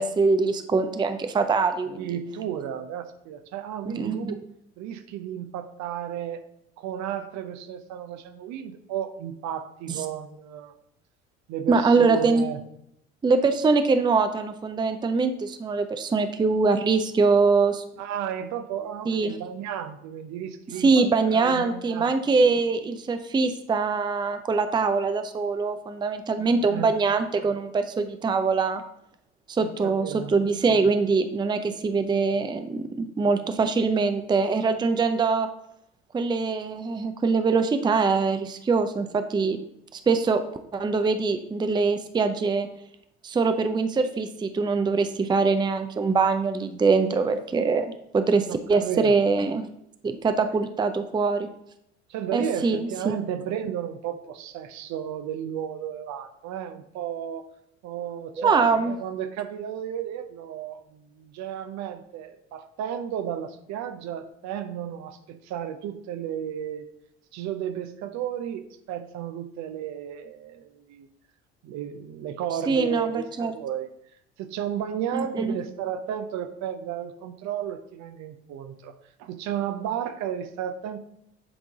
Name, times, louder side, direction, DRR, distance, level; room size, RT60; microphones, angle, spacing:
voice 1, 0.0-2.1 3.9-4.4 9.9-10.0 11.7-12.4 13.2-17.8 19.1-19.3 20.8-28.8 29.5-35.5 36.1-39.6 39.9-40.4 40.7-42.7 43.2-47.9 48.1-49.7 50.0-51.5 52.3-53.2 58.4-58.9 72.7-73.5 75.1-75.5, right 4 dB, 15° right, 9 dB, 0.5 m, -23 dB
voice 2, 2.0-4.4 4.8-6.5 6.8-10.7 11.5-12.6 18.0-22.2 26.4-26.9 29.6-30.3 48.5-49.1 52.1-57.5 57.8-66.9 67.3-71.1 71.6-73.9 74.4-78.9 79.2-81.0, right 9 dB, 55° right, 9 dB, 0.7 m, -33 dB
7.9 x 3.8 x 3.6 m, 0.77 s
hypercardioid pair, 60°, 33 cm